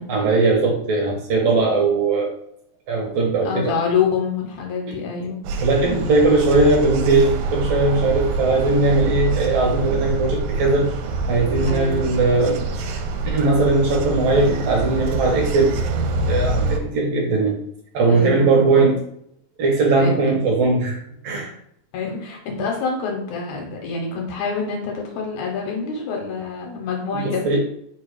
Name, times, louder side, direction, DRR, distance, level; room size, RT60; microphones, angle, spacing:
voice 1, 0.1-2.3 2.9-3.7 5.6-10.9 11.3-12.6 13.2-15.8 16.3-17.6 17.9-19.0 19.6-21.0 21.2-21.5 27.1-27.6, right 3 dB, 65° right, 0 dB, 1.7 m, -19 dB
voice 2, 3.5-5.4 11.5-12.2 18.1-18.9 20.0-20.4 21.9-27.6, left 5 dB, 75° left, 0 dB, 2.1 m, -26 dB
sound 1, 5.4-16.8, right 3 dB, 80° right, 1.9 m, -25 dB
4.5 x 2.3 x 4.6 m, 0.72 s
omnidirectional pair, 3.4 m